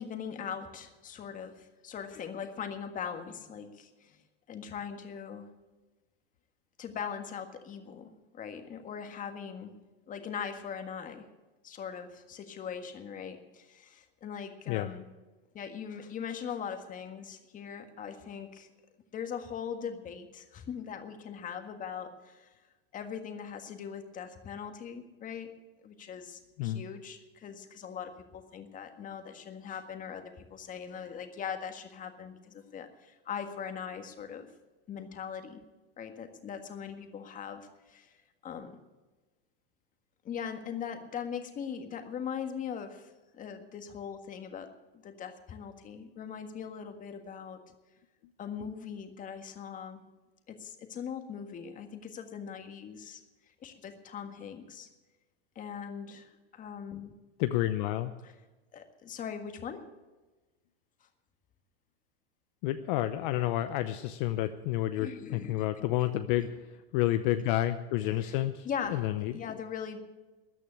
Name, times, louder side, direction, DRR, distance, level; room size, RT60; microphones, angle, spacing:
voice 1, 0.0-4.2 4.5-5.5 6.8-9.8 10.1-11.3 11.6-15.0 15.5-18.7 19.1-22.5 22.9-25.5 25.8-34.5 34.9-35.6 36.0-38.1 38.4-38.8 40.2-44.7 45.0-47.6 48.4-50.0 50.5-53.2 53.6-54.9 55.6-57.1 58.7-59.8 65.0-66.1 68.2-70.0, left 7 dB, 25° left, 6 dB, 1.7 m, -40 dB
voice 2, 57.4-58.1 62.6-69.3, left 14 dB, 55° left, 9 dB, 0.8 m, -30 dB
14.0 x 9.1 x 8.5 m, 1.2 s
supercardioid pair, 130°, 30 cm